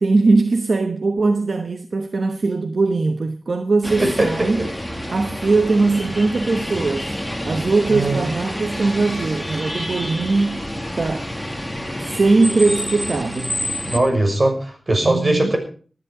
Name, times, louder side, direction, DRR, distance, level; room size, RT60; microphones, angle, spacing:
voice 1, 0.0-4.6 5.1-7.1 7.4-10.6 11.0-11.3 12.0-13.6 15.0-15.5, right 3 dB, 65° right, 1.1 m, -20 dB
sound 1, 3.8-14.0, equal, ahead, 2.4 m, -28 dB
voice 2, 4.0-4.7 7.9-8.2 13.8-15.6, right 2 dB, 40° right, 6.3 m, -20 dB
19.5 x 11.0 x 4.9 m
wide cardioid pair, 75°, 0 cm